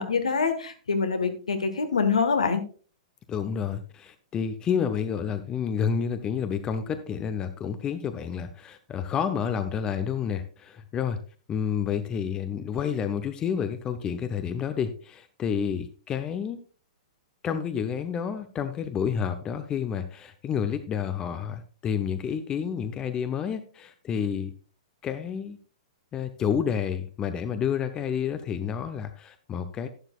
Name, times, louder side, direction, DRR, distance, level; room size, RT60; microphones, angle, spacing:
voice 1, 0.0-2.6, left 5 dB, 70° left, 7 dB, 1.6 m, -25 dB
voice 2, 3.3-11.2 11.5-16.6 17.4-24.5 25.0-25.6 26.1-29.9, left 7 dB, 20° left, 9 dB, 0.7 m, -29 dB
11.5 x 11.0 x 2.4 m, 0.38 s
figure-of-eight pair, 110°, 4 cm